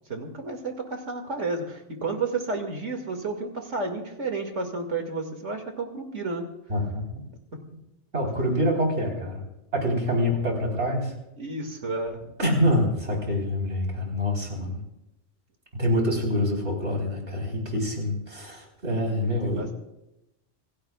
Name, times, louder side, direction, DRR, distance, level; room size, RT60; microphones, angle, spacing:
voice 1, 0.1-6.5 11.4-12.3 19.2-19.7, right 3 dB, 80° right, 4 dB, 2.6 m, -31 dB
voice 2, 6.7-7.2 8.1-9.4 9.7-11.1 12.4-14.8 15.7-19.7, equal, 65° right, 0 dB, 4.4 m, -26 dB
27.5 x 16.5 x 2.4 m, 0.89 s
omnidirectional pair, 1.2 m